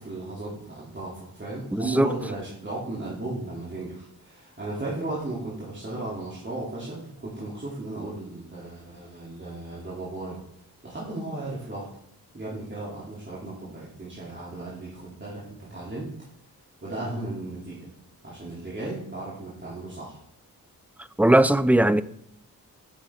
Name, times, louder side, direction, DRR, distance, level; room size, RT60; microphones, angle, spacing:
voice 1, 0.0-10.4 10.8-11.9 12.3-16.1 16.8-17.9 18.2-20.2, right 2 dB, 30° right, 2.8 m, -35 dB
voice 2, 1.7-2.1 21.2-22.0, right 1 dB, 5° right, 0.3 m, -19 dB
9.1 x 7.2 x 3.6 m
cardioid pair, 60°, 37 cm